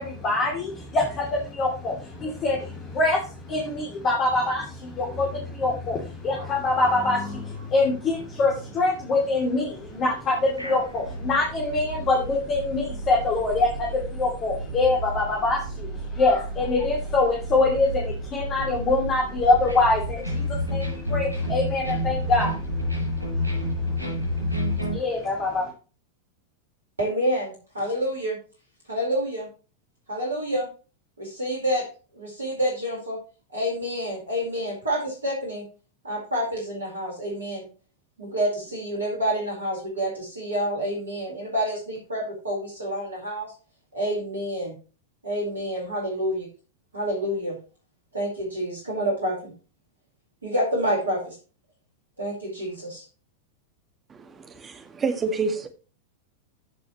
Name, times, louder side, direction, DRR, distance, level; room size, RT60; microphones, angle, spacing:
voice 1, 0.0-25.7, left 2 dB, 30° left, 3.0 m, -25 dB
sound 1, 6.3-8.2 8.5-8.6 9.0-9.1 10.0-25.0, equal, 85° left, 5.7 m, -31 dB
voice 2, 27.0-28.4 28.9-29.5 30.1-30.7 31.2-31.9 32.1-33.2 33.5-35.6 36.0-37.6 38.2-43.5 43.9-44.7 45.2-46.5 46.9-47.6 48.1-49.5 50.4-51.4 52.2-53.0, equal, 75° right, 4.4 m, -28 dB
voice 3, 54.1-55.7, right 4 dB, 20° right, 1.9 m, -28 dB
15.0 x 6.2 x 3.1 m
figure-of-eight pair, 90°, 0 cm